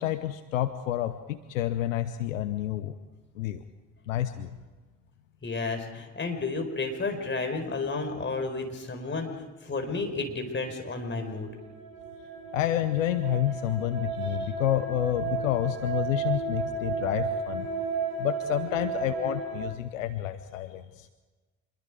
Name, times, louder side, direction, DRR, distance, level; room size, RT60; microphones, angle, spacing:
voice 1, 0.0-2.9 3.4-3.6 4.1-4.5 12.5-17.7 18.2-21.1, left 12 dB, 75° left, 11 dB, 0.8 m, -29 dB
voice 2, 5.4-9.3 9.6-11.5 14.2-14.5, left 3 dB, 30° left, 4 dB, 4.9 m, -32 dB
sound 1, 11.3-19.6, right 5 dB, 60° right, 7.3 m, -33 dB
26.5 x 22.5 x 5.0 m, 1.3 s
figure-of-eight pair, 45°, 40 cm